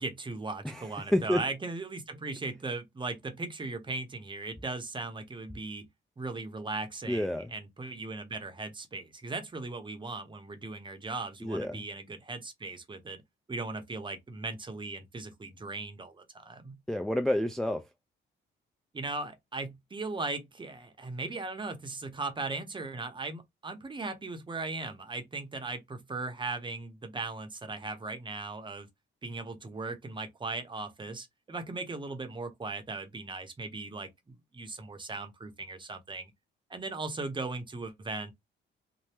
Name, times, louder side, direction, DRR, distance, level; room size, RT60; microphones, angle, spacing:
voice 1, 0.0-5.9 6.2-13.2 13.5-16.8 18.9-28.9 29.2-36.3 36.7-38.3, right 3 dB, 25° right, 0.8 m, -38 dB
voice 2, 0.6-1.4 7.1-7.5 11.4-11.8 16.9-17.9, left 1 dB, ahead, 0.4 m, -29 dB
2.8 x 2.1 x 3.3 m
cardioid pair, 90°, 20 cm